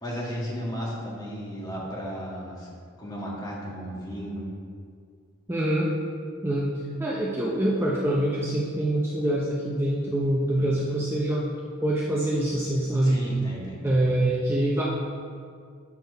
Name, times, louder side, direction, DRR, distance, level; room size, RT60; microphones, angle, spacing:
voice 1, 0.0-4.4 13.0-14.0, equal, 20° left, -5 dB, 1.7 m, -34 dB
voice 2, 5.5-5.9 6.4-6.7 7.0-11.5 11.8-13.2 13.8-14.8, right 1 dB, 10° right, -5 dB, 0.6 m, -25 dB
8.3 x 4.3 x 5.4 m, 2.2 s
head